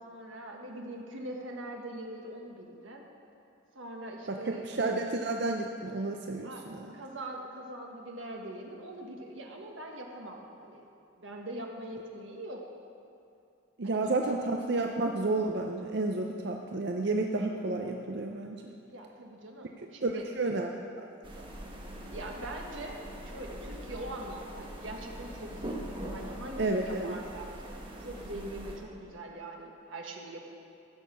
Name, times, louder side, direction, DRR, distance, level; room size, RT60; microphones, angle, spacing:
voice 1, 0.0-3.0 3.7-4.7 6.4-6.6 6.9-10.9 11.2-12.6 13.8-14.2 18.9-20.2 22.1-30.4, right 1 dB, 75° right, 0 dB, 1.5 m, -42 dB
voice 2, 4.3-6.9 13.8-18.7 20.0-20.7 21.0-21.1 21.4-21.5 26.6-27.2, right 2 dB, 55° right, 3 dB, 0.6 m, -31 dB
sound 1, 21.2-28.8, right 1 dB, 25° right, 1.3 m, -42 dB
15.5 x 6.5 x 6.2 m, 2.5 s
head